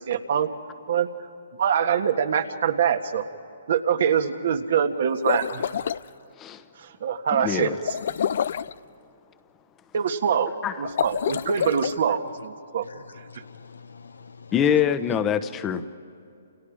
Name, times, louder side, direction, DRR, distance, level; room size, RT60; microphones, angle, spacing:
voice 1, 0.1-0.5 0.9-1.1 1.6-3.2 3.7-5.6 6.8-8.0 9.9-10.5 10.8-12.8, right 7 dB, 60° right, 6 dB, 1.7 m, -24 dB
sound 1, 5.1-6.0 7.8-8.7 10.8-11.9, left 8 dB, 60° left, 0.5 m, -27 dB
voice 2, 7.3-7.7 10.6-10.8 14.5-15.8, left 8 dB, 20° left, 12 dB, 1.1 m, -24 dB
voice 3, 12.8-14.5, left 5 dB, 85° left, 10 dB, 1.3 m, -46 dB
29.5 x 29.0 x 5.0 m, 2.6 s
hypercardioid pair, 140°, 0 cm